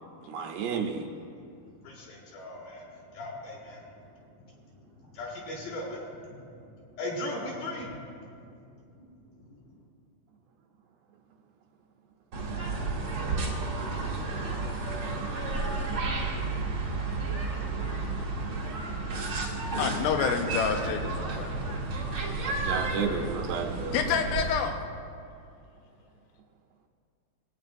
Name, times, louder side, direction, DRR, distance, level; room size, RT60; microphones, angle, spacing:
voice 1, 0.3-1.1 22.4-24.2, right 6 dB, 75° right, 0 dB, 2.6 m, -32 dB
voice 2, 1.4-9.8, left 1 dB, 65° left, -3 dB, 3.4 m, -40 dB
sound 1, 12.3-24.6, right 3 dB, 60° right, 1.5 m, -32 dB
voice 3, 19.8-21.8 22.9-23.3 23.9-24.8, left 7 dB, 85° left, 5 dB, 2.9 m, -29 dB
23.5 x 8.8 x 2.6 m, 2.5 s
omnidirectional pair, 4.8 m